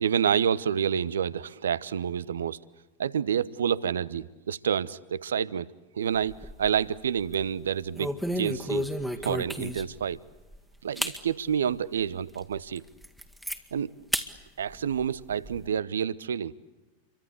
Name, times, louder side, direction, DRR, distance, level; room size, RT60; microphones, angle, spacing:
voice 1, 0.0-2.6 3.0-5.7 5.9-8.9 9.2-10.2 10.8-12.8 13.7-13.9 14.6-16.5, right 8 dB, 65° right, 0.9 m, -28 dB
sound 1, 6.1-6.8 7.2-7.4 7.9-10.0 10.5-10.6 11.0-11.2 11.7-11.8 12.3-12.4 12.8-13.6 14.1-14.3 14.7-15.6, equal, ahead, 2.0 m, -32 dB
29.0 x 24.0 x 8.4 m
figure-of-eight pair, 90°, 0 cm